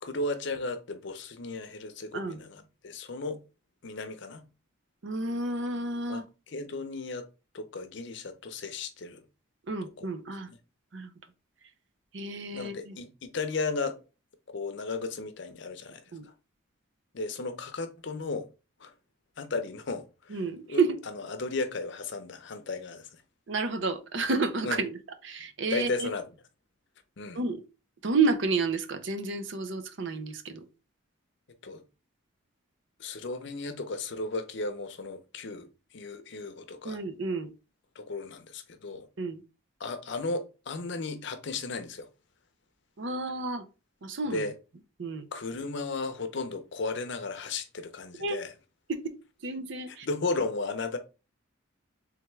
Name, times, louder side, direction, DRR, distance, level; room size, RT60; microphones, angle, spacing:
voice 1, 0.0-3.4 3.8-4.4 6.1-7.3 7.5-9.2 10.0-10.1 10.5-10.6 12.5-14.0 14.5-16.3 17.1-18.5 18.8-18.9 19.4-23.2 24.6-24.8 25.7-26.2 27.2-27.4 31.6-31.8 33.0-37.0 38.0-39.1 39.8-42.1 44.3-44.5 45.3-48.5 49.9-51.0, left 3 dB, 60° left, 0.6 m, -35 dB
voice 2, 5.0-6.2 9.7-10.5 10.9-11.1 12.1-13.0 16.1-16.2 20.3-21.0 23.5-25.0 25.2-26.1 27.3-27.6 28.0-30.7 36.8-37.5 39.2-39.4 43.0-43.6 44.0-44.4 45.0-45.3 48.2-48.4 48.9-49.2 49.4-50.1, right 3 dB, 60° right, 0.6 m, -30 dB
3.4 x 3.4 x 3.2 m
head